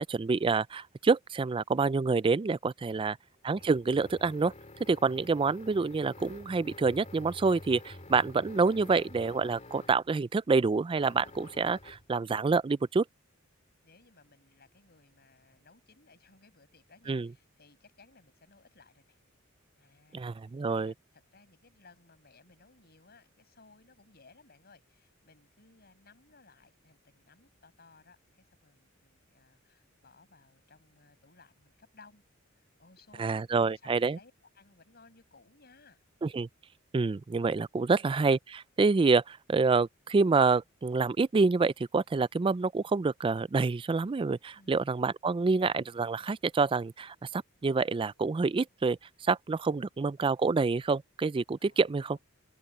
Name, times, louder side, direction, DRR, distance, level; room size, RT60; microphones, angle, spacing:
voice 1, 0.0-3.2 3.4-4.5 4.9-13.0 17.1-17.3 20.1-20.9 33.2-34.2 36.2-36.5 36.9-52.2, right 4 dB, 25° right, 0.3 m, -27 dB
voice 2, 2.8-3.2 13.8-19.2 19.8-32.2 32.6-36.0 37.8-38.1 44.5-45.0 49.7-49.9 51.6-52.2, left 3 dB, 50° left, 5.9 m, -60 dB
sound 1, 2.9-10.1 11.0-12.1, left 2 dB, 35° left, 2.7 m, -49 dB
head